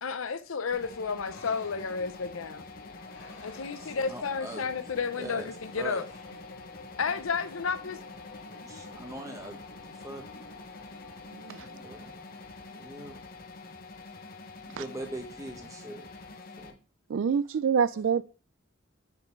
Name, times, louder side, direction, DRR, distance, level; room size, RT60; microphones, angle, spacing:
voice 1, 0.0-2.7 3.4-6.0 7.0-8.0, left 5 dB, 90° left, 0.7 m, -32 dB
sound 1, 0.7-16.7, left 3 dB, 45° left, 0.8 m, -47 dB
sound 2, 1.3-14.3, left 2 dB, 65° left, 1.8 m, -51 dB
voice 2, 3.8-4.7 5.2-5.5 5.8-6.0 8.7-9.6 9.9-10.2 11.5-12.2 12.7-13.2 14.6-16.1 16.6-16.8, right 1 dB, 15° right, 1.2 m, -41 dB
voice 3, 11.3-11.6 14.8-14.9 17.1-18.2, right 6 dB, 70° right, 0.3 m, -26 dB
7.2 x 6.6 x 3.2 m
head